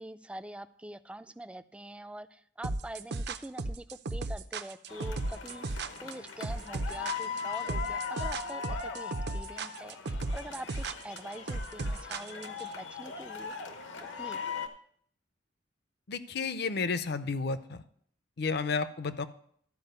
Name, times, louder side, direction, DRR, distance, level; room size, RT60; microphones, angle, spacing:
voice 1, 0.0-13.6 14.2-14.5, right 1 dB, 5° right, 12 dB, 0.3 m, -44 dB
sound 1, 2.6-12.7, right 2 dB, 60° right, 0.6 m, -35 dB
sound 2, 4.9-14.7, left 6 dB, 80° left, 1.0 m, -39 dB
voice 2, 16.1-17.8 18.4-19.3, left 4 dB, 60° left, 12 dB, 0.6 m, -32 dB
12.0 x 4.9 x 6.7 m, 0.62 s
head